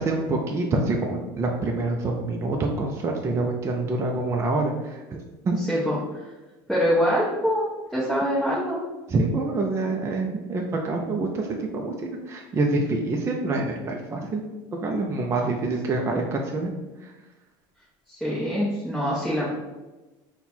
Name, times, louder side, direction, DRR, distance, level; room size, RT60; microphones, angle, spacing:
voice 1, 0.0-5.2 5.4-5.6 9.1-14.4 14.8-16.7 17.0-17.1, right 2 dB, 25° right, 1 dB, 0.4 m, -26 dB
voice 2, 5.6-6.2 6.7-8.8 18.1-19.5, equal, ahead, -8 dB, 0.8 m, -24 dB
4.1 x 2.2 x 4.2 m, 1.1 s
supercardioid pair, 130°, 12 cm